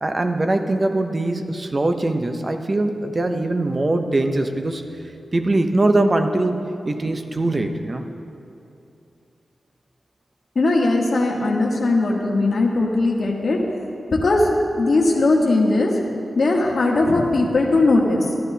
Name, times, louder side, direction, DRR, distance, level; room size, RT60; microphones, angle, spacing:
voice 1, 0.0-4.8 5.3-8.1, right 2 dB, 30° right, 7 dB, 0.5 m, -22 dB
voice 2, 10.5-13.6 14.1-14.5 14.8-16.0 16.3-18.2, left 2 dB, 55° left, -1 dB, 1.1 m, -19 dB
12.0 x 11.5 x 2.7 m, 2.7 s
wide cardioid pair, 145°, 0 cm